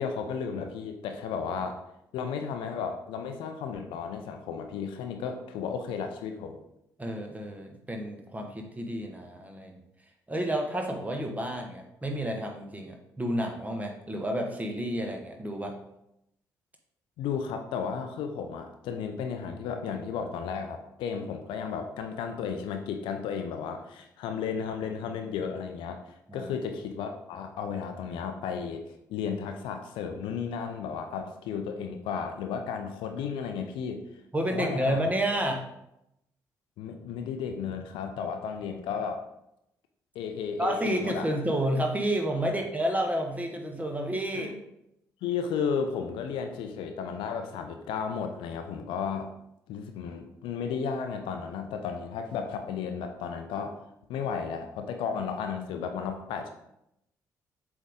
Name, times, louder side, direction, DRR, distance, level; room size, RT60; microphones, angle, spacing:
voice 1, 0.0-1.8 2.1-6.6 17.2-28.8 29.1-34.0 34.5-35.0 36.8-39.2 40.1-41.3 42.4-42.5 44.3-44.6 45.2-49.3 49.7-53.8 54.1-56.5, left 6 dB, 65° left, 6 dB, 0.6 m, -34 dB
voice 2, 7.0-9.8 10.3-15.7 26.3-26.5 34.3-35.7 40.6-44.5, right 1 dB, 15° right, 2 dB, 1.3 m, -30 dB
7.3 x 3.6 x 3.5 m, 0.82 s
figure-of-eight pair, 40°, 9 cm